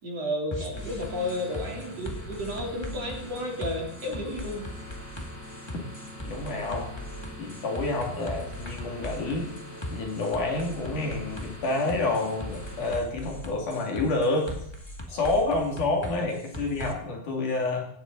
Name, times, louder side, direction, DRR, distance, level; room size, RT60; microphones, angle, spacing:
voice 1, 0.0-4.6 15.1-15.4 16.1-16.3, left 1 dB, 45° right, -1 dB, 4.7 m, -32 dB
sound 1, 0.5-16.9, left 1 dB, 10° left, 1.2 m, -39 dB
sound 2, 0.7-12.9, equal, 85° left, 8.9 m, -44 dB
voice 2, 6.2-7.0 7.4-9.5 9.9-14.5 15.1-17.8, left 2 dB, 60° left, 0 dB, 4.1 m, -28 dB
17.5 x 17.5 x 4.1 m, 0.68 s
omnidirectional pair, 4.3 m